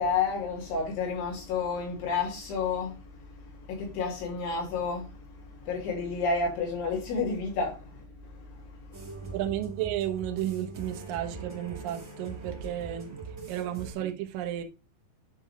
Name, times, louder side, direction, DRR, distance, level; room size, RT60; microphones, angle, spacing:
voice 1, 0.0-9.4, left 4 dB, 75° left, 5.0 m, -31 dB
sound 1, 8.9-13.9, right 4 dB, 65° right, 0.8 m, -41 dB
voice 2, 9.3-13.2 13.5-14.6, right 12 dB, 85° right, 1.9 m, -33 dB
10.5 x 3.8 x 3.4 m
omnidirectional pair, 5.6 m